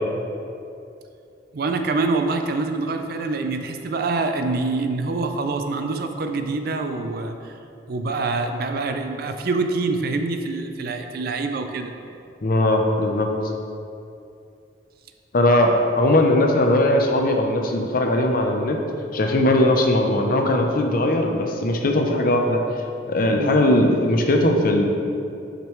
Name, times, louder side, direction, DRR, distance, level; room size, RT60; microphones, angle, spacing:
voice 1, 1.5-7.5 7.9-11.9 23.3-23.6, right 3 dB, 55° right, 6 dB, 0.4 m, -25 dB
voice 2, 12.4-13.3 15.3-18.8 19.1-22.6 23.1-24.9, left 1 dB, 50° left, 3 dB, 0.6 m, -19 dB
7.4 x 5.2 x 3.2 m, 2.6 s
head